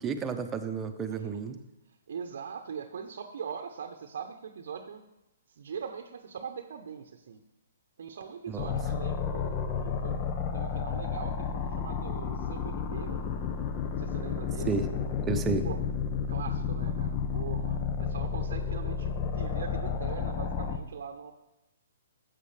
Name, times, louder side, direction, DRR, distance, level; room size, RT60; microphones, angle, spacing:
voice 1, 0.0-1.6 8.5-8.7 14.6-15.7, right 5 dB, 15° right, 6 dB, 0.9 m, -32 dB
voice 2, 2.1-5.0 5.5-7.4 8.0-13.2 13.9-14.7 15.6-15.8 16.3-21.3, right 7 dB, 65° right, 5 dB, 0.9 m, -41 dB
sound 1, 8.6-20.8, left 6 dB, 35° left, 0.9 m, -31 dB
15.0 x 7.6 x 3.4 m, 0.97 s
hypercardioid pair, 130°, 0 cm